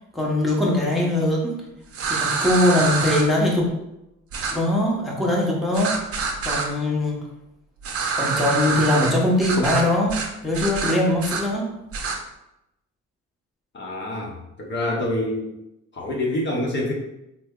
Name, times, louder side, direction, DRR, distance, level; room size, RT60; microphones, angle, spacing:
voice 1, 0.1-1.6 2.1-3.7 4.5-6.0 6.4-7.2 8.1-11.7, left 1 dB, ahead, -4 dB, 0.8 m, -21 dB
sound 1, 1.9-3.2 4.3-4.5 5.7-6.7 7.8-9.1 9.4-9.8 10.1-10.3 10.5-11.4 11.9-12.2, right 4 dB, 50° right, 0.6 m, -26 dB
voice 2, 13.7-15.5 15.9-16.9, left 1 dB, 40° left, -2 dB, 0.7 m, -26 dB
3.3 x 2.0 x 3.6 m, 0.87 s
cardioid pair, 90°, 30 cm